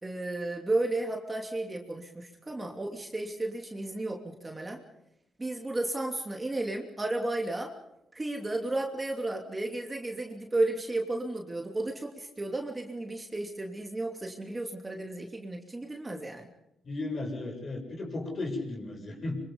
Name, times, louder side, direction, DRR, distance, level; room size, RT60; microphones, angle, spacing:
voice 1, 0.0-4.8 5.4-7.7 8.1-16.5, right 2 dB, 20° right, 2 dB, 2.9 m, -33 dB
voice 2, 16.8-19.4, left 2 dB, 40° left, 1 dB, 7.7 m, -35 dB
25.5 x 25.0 x 5.5 m, 0.84 s
cardioid pair, 90°, 0 cm